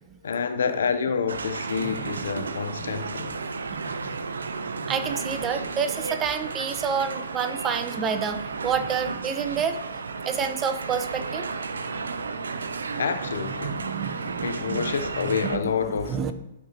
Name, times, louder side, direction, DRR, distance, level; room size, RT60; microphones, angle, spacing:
voice 1, 0.2-3.4 13.0-13.8 14.4-16.3, left 6 dB, 80° left, 0.7 m, -28 dB
sound 1, 1.3-15.6, right 4 dB, 85° right, 0.4 m, -33 dB
voice 2, 1.8-2.2 2.8-2.9 3.7-3.9 4.9-8.4 8.6-9.8 10.2-11.5 13.6-14.8 15.4-16.3, right 7 dB, 25° right, 0.7 m, -29 dB
11.5 x 4.6 x 2.9 m
hypercardioid pair, 120°, 0 cm